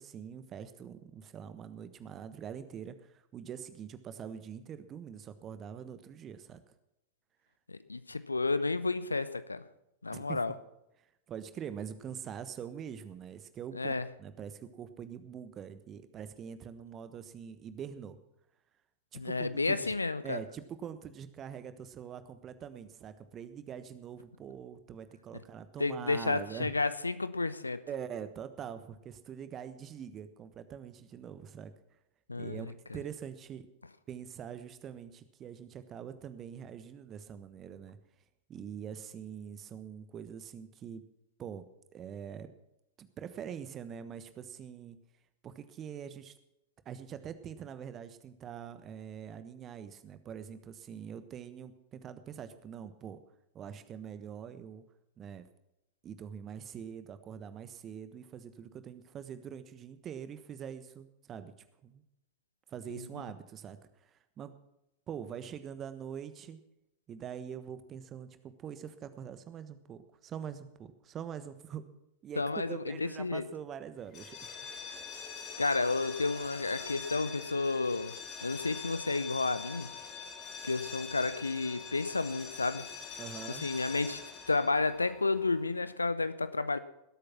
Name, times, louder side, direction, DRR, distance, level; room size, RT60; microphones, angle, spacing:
voice 1, 0.0-6.6 10.1-10.4 11.3-18.2 19.1-19.9 20.2-26.7 27.9-31.7 32.4-33.7 34.1-38.0 38.5-41.0 41.4-41.6 41.9-42.5 43.0-45.0 45.4-46.3 46.8-53.2 53.5-54.8 55.2-55.5 56.0-61.5 61.8-62.0 62.7-64.6 65.1-66.6 67.1-71.9 72.2-74.4 74.8-75.1 83.2-83.7, right 8 dB, 30° right, 1.2 m, -44 dB
voice 2, 7.7-9.7 10.0-10.5 13.7-14.1 19.1-20.4 25.8-27.8 32.3-32.7 62.9-63.0 72.4-73.4 75.6-78.2 78.4-79.9 80.6-82.9 83.5-84.2 84.5-86.8, left 3 dB, 80° left, 0.7 m, -31 dB
sound 1, 74.1-85.8, left 6 dB, 35° left, 2.1 m, -44 dB
19.0 x 8.5 x 5.9 m
figure-of-eight pair, 90°, 0 cm